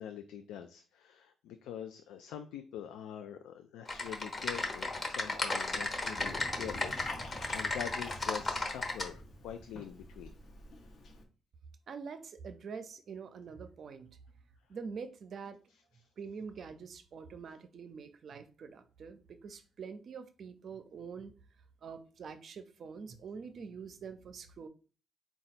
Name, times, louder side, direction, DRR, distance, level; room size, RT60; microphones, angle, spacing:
voice 1, 0.0-10.3, left 9 dB, 90° left, 0.3 m, -44 dB
Typing, 3.9-9.1, left 2 dB, 30° left, 0.9 m, -34 dB
Liquid, 5.6-11.2, left 2 dB, 60° left, 0.9 m, -51 dB
sound 1, 6.2-10.8, right 1 dB, 10° right, 0.7 m, -50 dB
voice 2, 11.9-14.2 14.7-15.6 16.2-21.3 21.8-24.7, right 5 dB, 55° right, 0.5 m, -45 dB
3.9 x 2.3 x 4.1 m
cardioid pair, 90°, 0 cm